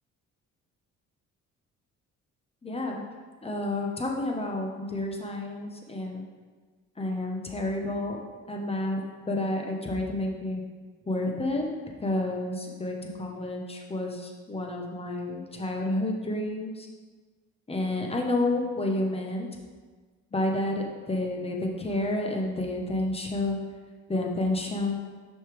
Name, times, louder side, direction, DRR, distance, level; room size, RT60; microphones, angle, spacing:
voice 1, 2.6-3.0 3.4-6.2 7.0-8.2 8.5-10.6 11.0-11.7 12.0-16.9 17.7-19.5 20.3-23.6 24.1-25.0, left 2 dB, 20° left, 1 dB, 1.1 m, -30 dB
6.4 x 5.5 x 3.4 m, 1.4 s
cardioid pair, 90°, 30 cm